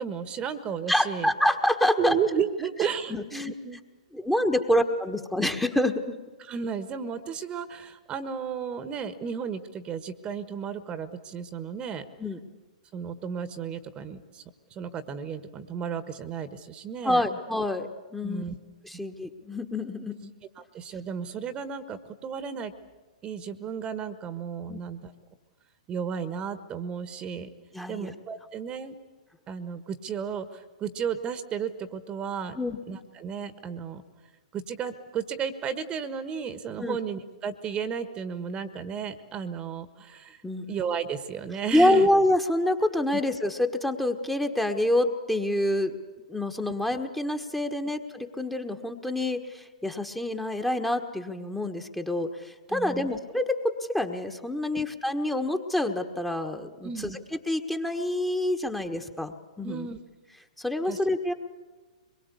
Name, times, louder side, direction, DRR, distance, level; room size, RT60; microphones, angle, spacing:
voice 1, 0.0-1.3 2.0-3.8 6.4-12.1 12.9-14.4 14.7-17.4 18.2-18.5 20.6-22.7 23.2-25.1 25.9-27.5 27.9-29.0 29.5-32.6 32.9-34.0 34.5-40.4 40.7-42.1 52.7-53.1 54.7-54.8 56.8-57.2 59.6-60.0 60.8-61.0, right 7 dB, 25° right, 13 dB, 1.4 m, -33 dB
voice 2, 0.9-2.2 3.1-3.5 4.1-6.2 12.2-12.4 17.0-18.4 19.0-20.3 24.7-24.8 27.7-28.1 32.6-32.8 36.8-37.0 40.4-40.7 41.7-46.0 46.3-57.1 57.5-59.9 60.6-61.3, left 1 dB, 5° left, 5 dB, 1.4 m, -27 dB
24.0 x 22.5 x 8.3 m, 1.3 s
figure-of-eight pair, 110°, 4 cm